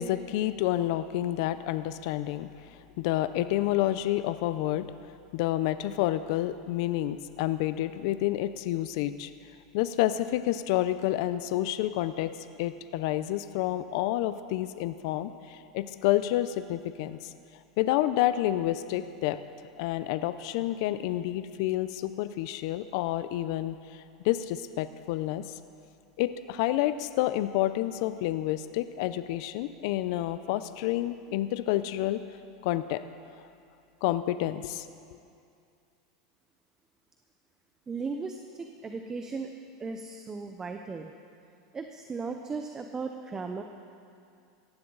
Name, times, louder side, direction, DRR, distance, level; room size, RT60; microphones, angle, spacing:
voice 1, 0.0-4.9 5.3-9.3 9.7-12.3 12.6-17.3 17.8-19.4 19.8-25.6 26.2-32.2 32.6-33.0 34.0-34.8, left 14 dB, 60° left, 12 dB, 0.6 m, -29 dB
voice 2, 37.9-39.5 39.8-41.1 41.7-43.6, right 4 dB, 20° right, 5 dB, 0.8 m, -36 dB
18.0 x 14.5 x 4.0 m, 2.5 s
supercardioid pair, 120°, 3 cm